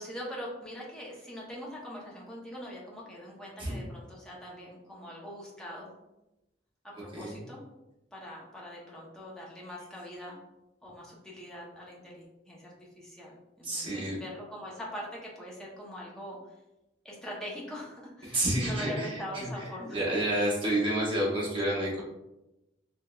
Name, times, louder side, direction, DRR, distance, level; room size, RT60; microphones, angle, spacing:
voice 1, 0.0-5.9 6.8-7.6 8.1-10.4 10.8-16.4 17.0-20.0, equal, 5° left, -5 dB, 0.8 m, -42 dB
voice 2, 13.6-14.2 18.2-19.5 19.9-22.0, right 1 dB, 30° right, -5 dB, 1.1 m, -29 dB
3.5 x 3.1 x 2.3 m, 0.96 s
head